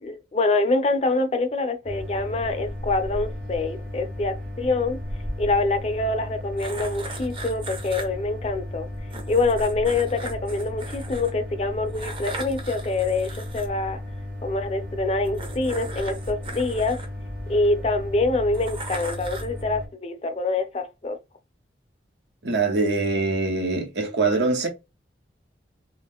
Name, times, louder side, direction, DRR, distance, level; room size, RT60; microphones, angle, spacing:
voice 1, 0.0-5.0 5.4-8.9 9.3-14.0 14.4-17.0 17.5-21.2, left 3 dB, 35° left, 0.4 m, -25 dB
sound 1, 1.8-19.9, left 1 dB, 50° right, 0.9 m, -35 dB
sound 2, 6.6-8.1 9.1-11.3 11.9-13.7 15.2-17.7 18.5-19.6, right 2 dB, 30° right, 0.6 m, -38 dB
voice 2, 22.4-24.7, right 3 dB, 75° right, 0.9 m, -23 dB
2.4 x 2.2 x 3.5 m
head